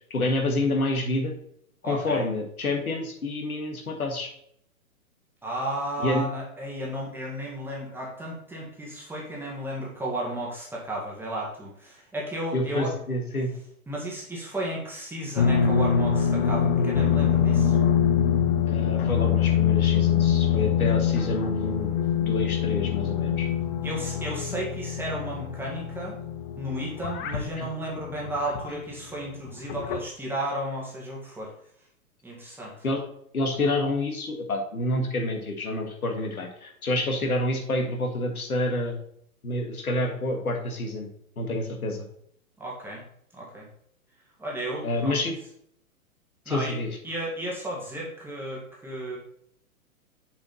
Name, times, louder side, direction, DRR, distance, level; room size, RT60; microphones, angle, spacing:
voice 1, 0.1-1.3 1.8-4.3 6.0-6.2 12.5-13.5 18.7-21.9 22.2-23.5 27.6-27.7 32.8-33.0 33.3-39.0 39.4-41.1 41.4-42.1 44.8-45.4 46.5-46.9, left 2 dB, 75° left, 2 dB, 1.9 m, -28 dB
voice 2, 1.8-2.3 5.4-12.9 13.9-17.8 23.8-26.2 26.6-31.5 32.2-32.8 42.6-43.0 43.3-43.7 44.4-45.2 46.5-46.8 47.0-49.2, right 1 dB, 5° right, -4 dB, 1.8 m, -33 dB
sound 1, 15.4-28.8 29.5-30.0, left 8 dB, 40° left, 0.8 m, -24 dB
6.8 x 4.9 x 4.1 m, 0.69 s
figure-of-eight pair, 115°, 43 cm